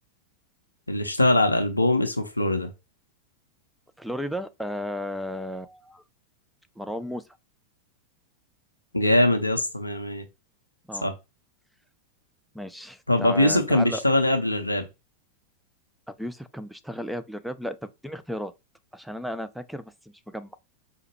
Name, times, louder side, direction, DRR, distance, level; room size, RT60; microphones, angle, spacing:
voice 1, 0.9-2.7 8.9-10.2 11.0-11.1 13.1-14.8, left 1 dB, 85° left, 0.5 m, -22 dB
voice 2, 4.0-6.0 6.8-7.2 10.9-11.1 12.5-14.0 16.1-18.5 18.9-19.9 20.3-20.6, equal, ahead, 0.3 m, -34 dB
4.7 x 2.1 x 2.9 m
figure-of-eight pair, 90°, 0 cm